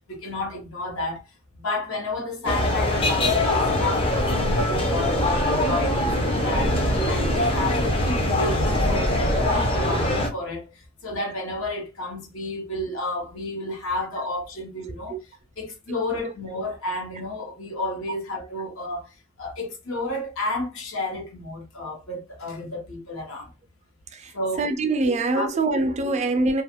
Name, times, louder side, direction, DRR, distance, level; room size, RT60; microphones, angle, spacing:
voice 1, 0.1-1.2 1.5-23.5 24.3-24.7 25.0-25.5 25.7-25.8, left 2 dB, 65° left, 0.9 m, -31 dB
sound 1, 2.4-10.3, left 1 dB, 25° left, 0.5 m, -22 dB
voice 2, 24.6-26.6, right 2 dB, 30° right, 0.3 m, -24 dB
2.4 x 2.3 x 2.8 m
head